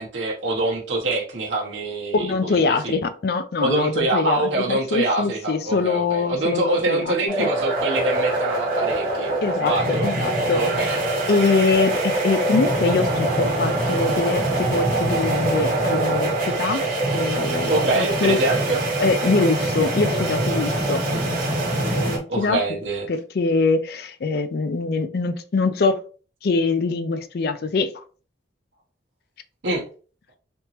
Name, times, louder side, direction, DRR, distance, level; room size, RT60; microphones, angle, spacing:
voice 1, 0.0-3.0 3.6-9.3 9.6-10.1 10.5-11.3 17.7-18.8 21.1-21.2 22.3-23.1 29.6-29.8, right 2 dB, 75° right, -2 dB, 0.8 m, -25 dB
voice 2, 2.1-7.5 9.4-10.9 11.3-16.8 17.1-18.4 19.0-21.0 21.8-22.6 23.1-26.0 26.4-28.0, left 3 dB, 55° left, 11 dB, 0.4 m, -23 dB
sound 1, 7.3-22.2, right 1 dB, 45° right, 1.2 m, -23 dB
3.5 x 2.8 x 2.8 m, 0.39 s
head